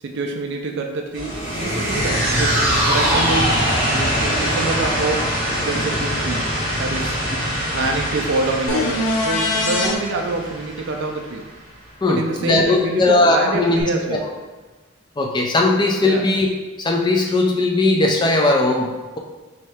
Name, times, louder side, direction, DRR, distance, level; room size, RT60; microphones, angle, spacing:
voice 1, 0.0-2.6 2.9-3.5 3.9-7.2 7.7-11.5 12.1-14.3 16.0-16.3, right 3 dB, 55° right, 2 dB, 0.4 m, -26 dB
sound 1, 1.1-11.8, equal, 55° left, 1.3 m, -24 dB
sound 2, 1.4-7.8 8.2-8.3, equal, 10° right, 0.8 m, -25 dB
sound 3, 8.7-9.9 13.8-13.9, left 2 dB, 75° left, 0.6 m, -21 dB
voice 2, 12.0-14.2 15.2-16.5 16.8-19.2, left 2 dB, 20° left, 1 dB, 0.3 m, -18 dB
4.2 x 2.7 x 3.4 m, 1.3 s
head